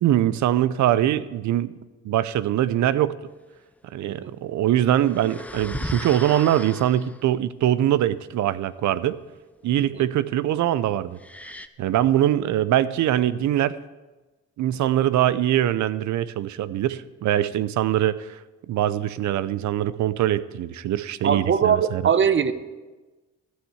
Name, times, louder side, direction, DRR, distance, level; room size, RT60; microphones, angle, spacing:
voice 1, 0.0-1.7 2.0-3.1 3.8-9.2 9.6-11.2 11.8-13.8 14.6-18.4 18.7-22.0, right 12 dB, 70° right, 17 dB, 0.6 m, -22 dB
sound 1, 4.8-7.3 11.2-11.7, left 1 dB, 5° left, 0.6 m, -36 dB
voice 2, 21.2-22.5, right 7 dB, 40° right, 13 dB, 0.8 m, -21 dB
14.5 x 6.4 x 8.2 m, 1.2 s
cardioid pair, 90°, 30 cm